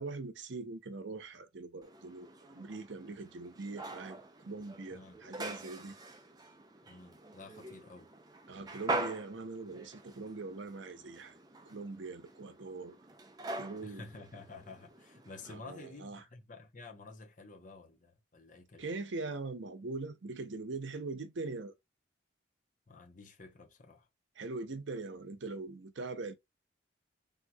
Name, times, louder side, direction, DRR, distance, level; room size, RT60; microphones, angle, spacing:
voice 1, 0.0-6.0 8.5-11.3 11.7-13.0 13.6-14.1 15.5-16.2 18.8-21.7 24.4-26.3, right 3 dB, 70° right, 0.7 m, -42 dB
sound 1, 1.8-15.6, right 2 dB, 20° right, 0.5 m, -44 dB
voice 2, 6.9-8.1 13.8-19.0 22.9-24.1, left 3 dB, 40° left, 0.8 m, -51 dB
3.5 x 2.9 x 2.3 m
head